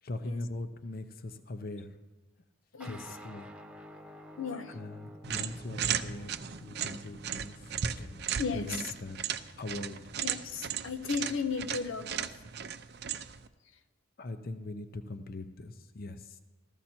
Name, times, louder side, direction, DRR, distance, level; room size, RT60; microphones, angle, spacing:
voice 1, 0.0-2.0 2.8-3.5 4.7-8.2 8.5-9.2 9.6-10.0 14.2-16.4, left 2 dB, 50° left, 9 dB, 0.7 m, -41 dB
sound 1, 2.8-10.6, equal, 5° right, 0.9 m, -52 dB
voice 2, 4.4-4.7 8.4-8.8 10.2-12.3, left 5 dB, 80° left, 9 dB, 0.8 m, -35 dB
sound 2, 5.2-13.5, right 8 dB, 55° right, 0.6 m, -36 dB
14.5 x 14.0 x 4.4 m, 1.2 s
head